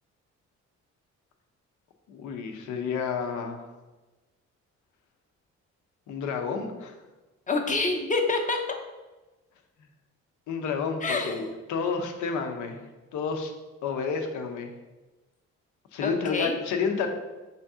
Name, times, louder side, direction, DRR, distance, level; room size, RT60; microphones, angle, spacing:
voice 1, 2.1-3.7 6.1-6.9 10.5-12.8 13.1-13.5 13.8-14.7 15.9-17.1, left 5 dB, 80° left, 4 dB, 0.7 m, -30 dB
voice 2, 7.5-8.6 11.0-11.5 16.0-16.6, left 3 dB, 25° left, 3 dB, 0.6 m, -27 dB
5.2 x 2.7 x 3.5 m, 1.1 s
cardioid pair, 90°, 30 cm